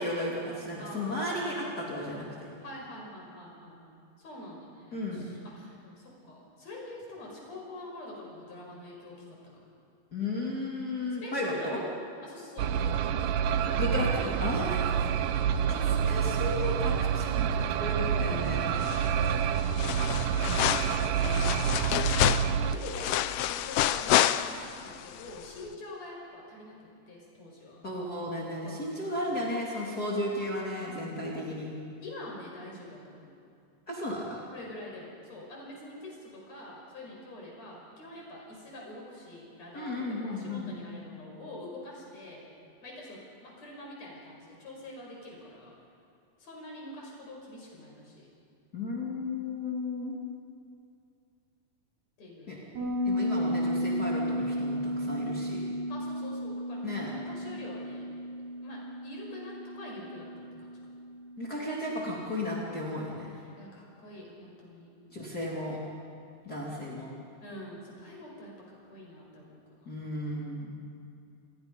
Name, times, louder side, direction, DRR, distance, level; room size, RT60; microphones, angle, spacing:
voice 1, 0.0-2.5 4.9-5.4 10.1-11.8 13.8-14.9 16.1-18.7 27.8-31.7 33.9-34.4 39.7-40.8 48.7-50.2 52.5-52.6 53.0-55.6 56.8-57.1 61.4-63.3 65.1-65.8 66.4-67.1 69.8-70.7, left 1 dB, 30° left, -5 dB, 3.2 m, -34 dB
voice 2, 0.8-1.7 2.6-3.8 4.2-9.7 11.2-11.8 12.2-13.8 14.1-16.9 18.4-19.8 20.3-21.7 22.1-27.8 28.6-28.8 30.0-30.2 31.3-31.5 32.0-33.3 34.5-42.4 42.8-45.7 46.4-48.3 52.2-52.7 55.9-58.1 58.6-60.8 63.3-64.9 67.4-70.1, left 1 dB, 50° left, -2 dB, 6.6 m, -45 dB
sound 1, 12.6-22.8, right 8 dB, 80° right, 2.2 m, -28 dB
sound 2, 18.8-19.3 19.6-24.9 25.2-25.3, left 13 dB, 80° left, 2.1 m, -28 dB
Bass guitar, 52.8-62.1, equal, 60° right, 8.1 m, -34 dB
29.5 x 21.5 x 5.4 m, 2.5 s
omnidirectional pair, 3.9 m